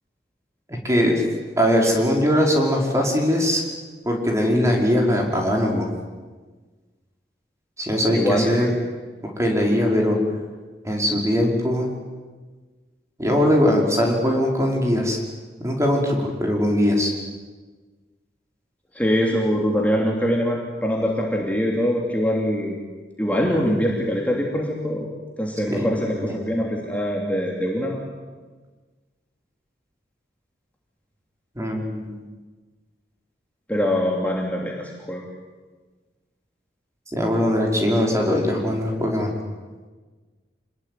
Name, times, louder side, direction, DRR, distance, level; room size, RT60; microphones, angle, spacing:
voice 1, 0.7-1.2 1.6-3.6 4.1-5.9 7.8-8.7 9.2-10.2 10.8-11.9 13.2-15.2 15.6-17.1 25.7-26.4 31.6-32.2 37.1-39.4, equal, 20° right, 0 dB, 5.3 m, -21 dB
voice 2, 8.1-8.7 18.9-22.8 23.2-25.1 25.4-28.1 33.7-35.2, equal, 10° left, -1 dB, 3.0 m, -23 dB
27.5 x 20.5 x 9.5 m, 1.4 s
head